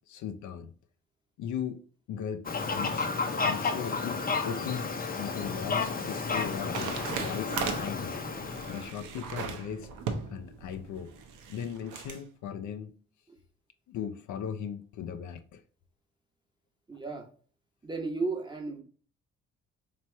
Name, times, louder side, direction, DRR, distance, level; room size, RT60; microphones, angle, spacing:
voice 1, 0.1-0.7 1.4-1.8 2.1-2.5 2.7-3.1 3.4-8.2 8.7-9.9 10.3-11.1 11.5-12.9 13.9-15.6, left 8 dB, 75° left, 0.5 m, -38 dB
Fowl, 2.4-8.9, left 4 dB, 30° left, 0.7 m, -32 dB
sound 1, 5.2-12.2, right 6 dB, 85° right, 0.7 m, -39 dB
voice 2, 16.9-17.3 17.8-18.8, right 3 dB, 15° right, 1.0 m, -33 dB
3.0 x 2.9 x 4.4 m
cardioid pair, 90°, 30 cm